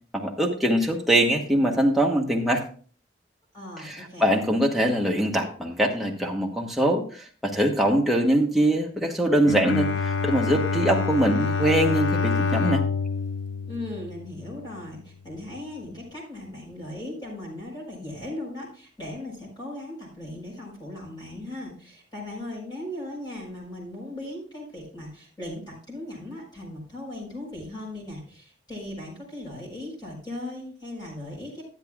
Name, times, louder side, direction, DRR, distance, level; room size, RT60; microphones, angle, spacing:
voice 1, 0.1-2.6 3.8-12.8, right 1 dB, ahead, -1 dB, 1.2 m, -23 dB
voice 2, 3.5-4.3 13.6-31.6, left 1 dB, 20° left, -4 dB, 4.5 m, -38 dB
Bowed string instrument, 9.4-14.7, left 4 dB, 75° left, 0.5 m, -27 dB
12.5 x 10.5 x 2.4 m, 0.42 s
head